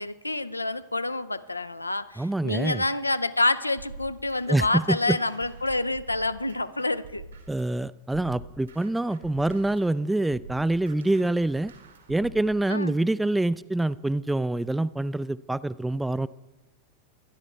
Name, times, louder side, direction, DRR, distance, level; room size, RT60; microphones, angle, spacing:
voice 1, 0.0-7.2 12.7-12.9, left 2 dB, 85° left, 13 dB, 0.5 m, -28 dB
voice 2, 2.2-2.8 4.5-5.2 7.5-11.7 12.1-16.3, right 2 dB, 5° right, 18 dB, 0.3 m, -26 dB
sound 1, 3.8-7.7 8.1-12.5, right 4 dB, 70° right, 2.1 m, -46 dB
25.5 x 10.5 x 3.4 m, 1.1 s
figure-of-eight pair, 90°, 0 cm